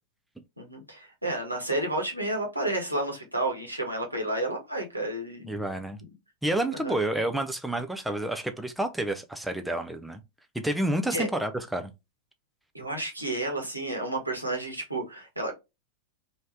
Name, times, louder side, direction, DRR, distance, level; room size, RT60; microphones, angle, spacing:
voice 1, 0.6-5.6 6.8-6.9 11.1-11.3 12.7-15.5, right 1 dB, 85° right, 1.3 m, -31 dB
voice 2, 5.5-6.0 6.4-10.2 10.5-11.9, right 1 dB, 5° right, 0.5 m, -29 dB
3.2 x 2.7 x 3.4 m
figure-of-eight pair, 90°, 0 cm